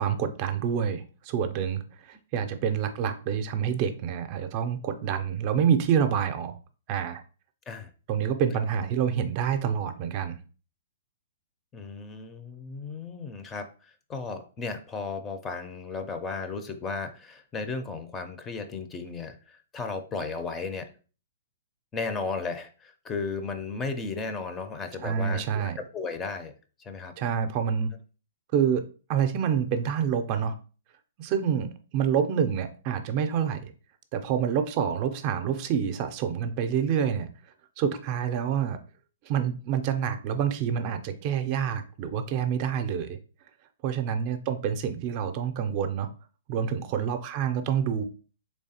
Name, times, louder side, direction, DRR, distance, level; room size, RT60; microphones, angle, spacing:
voice 1, 0.0-6.6 6.9-7.2 8.1-10.4 25.0-25.8 27.2-27.9 28.5-28.8 29.1-30.6 31.2-33.7 34.1-37.3 37.8-38.8 39.2-43.2 43.8-46.1 46.5-48.0, right 8 dB, 40° right, 8 dB, 0.4 m, -27 dB
voice 2, 11.7-20.9 21.9-26.5 26.8-27.1, left 4 dB, 20° left, 7 dB, 0.4 m, -35 dB
3.4 x 3.2 x 2.7 m, 0.36 s
hypercardioid pair, 125°, 0 cm